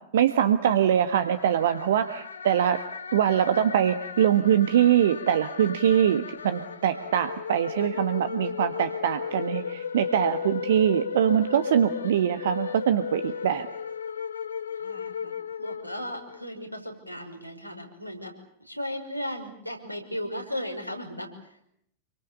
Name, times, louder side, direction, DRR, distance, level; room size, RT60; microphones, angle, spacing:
voice 1, 0.1-2.8 3.1-13.7, right 9 dB, 60° right, 9 dB, 1.6 m, -23 dB
sound 1, 1.2-16.4, left 7 dB, 70° left, 1.3 m, -36 dB
voice 2, 14.7-15.3 15.6-18.3 18.6-21.6, left 1 dB, 90° right, 4 dB, 5.7 m, -36 dB
28.0 x 24.5 x 7.0 m, 0.70 s
figure-of-eight pair, 90°, 0 cm